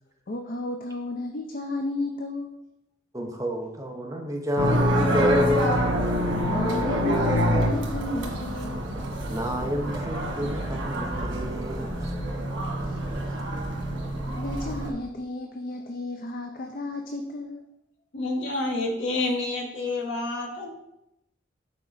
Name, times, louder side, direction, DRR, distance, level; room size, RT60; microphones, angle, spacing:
voice 1, 0.3-2.7 6.3-8.8 12.8-13.0 13.2-13.3 14.4-17.6, left 2 dB, 45° left, 4 dB, 0.5 m, -33 dB
voice 2, 3.1-5.8 9.3-12.1, equal, 15° right, 1 dB, 0.9 m, -29 dB
sound 1, 4.6-14.9, equal, 85° right, 1.8 m, -26 dB
voice 3, 18.1-20.7, left 2 dB, 80° left, 1 dB, 1.4 m, -28 dB
7.5 x 4.4 x 4.0 m, 0.86 s
head